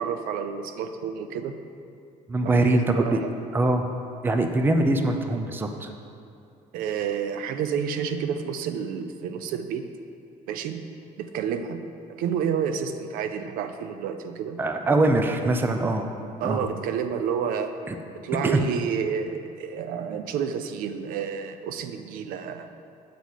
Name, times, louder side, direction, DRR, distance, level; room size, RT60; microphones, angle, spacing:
voice 1, 0.0-1.6 2.4-3.3 6.7-9.9 10.5-10.9 11.2-14.6 16.4-17.8 18.2-22.7, right 7 dB, 80° right, 9 dB, 0.5 m, -30 dB
voice 2, 2.3-3.2 3.5-3.8 4.2-5.9 14.6-16.1 16.4-16.7 17.9-18.0 18.4-18.6, right 2 dB, 15° right, 5 dB, 0.5 m, -23 dB
8.3 x 4.0 x 6.3 m, 2.5 s
cardioid pair, 145°, 14 cm